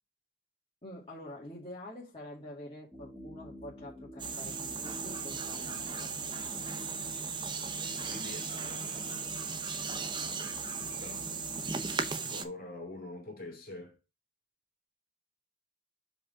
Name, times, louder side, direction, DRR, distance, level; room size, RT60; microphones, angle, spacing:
voice 1, 0.8-6.4, left 1 dB, 25° left, 2.0 m, -47 dB
sound 1, 2.9-12.1, left 1 dB, ahead, 1.5 m, -50 dB
sound 2, 4.2-12.4, right 5 dB, 20° right, 0.6 m, -37 dB
voice 2, 7.6-9.5 10.2-11.3 12.3-14.0, left 2 dB, 40° left, 2.3 m, -46 dB
4.9 x 4.9 x 5.0 m
head